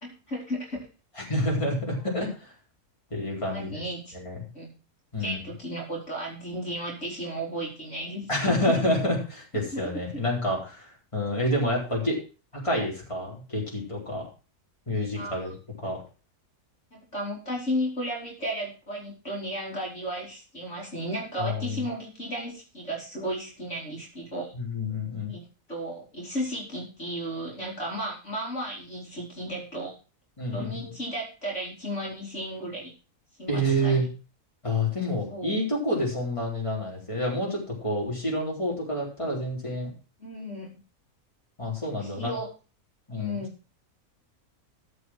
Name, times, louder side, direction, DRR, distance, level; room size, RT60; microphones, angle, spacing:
voice 1, 0.0-0.9 3.4-4.1 4.5-4.7 5.2-8.8 9.7-10.2 15.1-15.4 16.9-24.5 25.3-25.4 25.7-29.9 30.5-32.9 33.4-34.1 35.3-35.5 40.2-40.7 42.0-42.5 43.1-43.5, equal, 50° left, -3 dB, 4.0 m, -34 dB
voice 2, 1.3-2.5 3.1-3.8 4.1-4.5 5.1-5.4 8.3-12.2 12.5-14.3 14.9-16.0 21.4-21.8 24.5-25.3 30.4-30.9 33.5-34.1 34.6-39.9 41.6-42.3 43.1-43.4, equal, 20° left, -3 dB, 4.2 m, -28 dB
14.0 x 5.8 x 6.1 m, 0.34 s
omnidirectional pair, 1.6 m